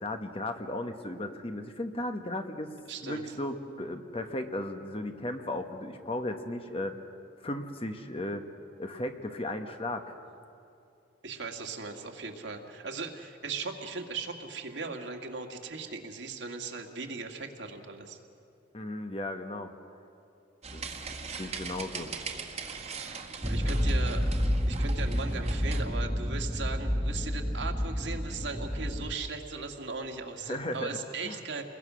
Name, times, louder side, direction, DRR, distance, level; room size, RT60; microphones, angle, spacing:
voice 1, 0.0-2.8 3.0-7.0 7.4-8.4 8.8-10.0 18.7-19.7 20.7-20.9 21.4-22.1 23.6-23.7 30.4-31.0 31.2-31.4, left 1 dB, 30° left, 6 dB, 1.2 m, -35 dB
voice 2, 2.9-3.2 11.2-18.2 23.0-24.2 24.7-31.6, right 4 dB, 70° right, 3 dB, 2.0 m, -38 dB
sound 1, 20.6-25.8, right 5 dB, 35° right, 1.6 m, -40 dB
sound 2, 23.4-29.2, equal, 5° right, 1.0 m, -29 dB
29.5 x 21.5 x 6.3 m, 2.6 s
head